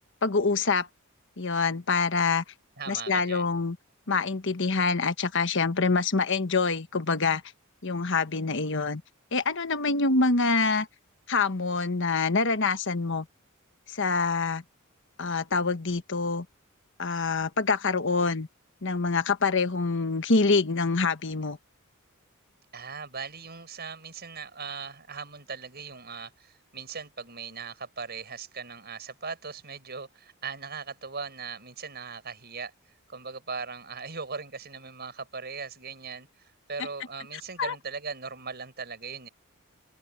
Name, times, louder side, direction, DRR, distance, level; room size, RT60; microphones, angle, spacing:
voice 1, 0.2-0.9 1.4-2.4 2.9-3.8 4.1-7.4 7.8-9.0 9.3-10.9 11.3-13.2 13.9-14.6 15.2-16.4 17.0-18.5 18.8-21.6 37.6-37.7, left 4 dB, 60° left, 1.3 m, -25 dB
voice 2, 2.8-3.5 22.7-32.7 33.1-39.3, right 5 dB, 50° right, 6.4 m, -39 dB
open air
head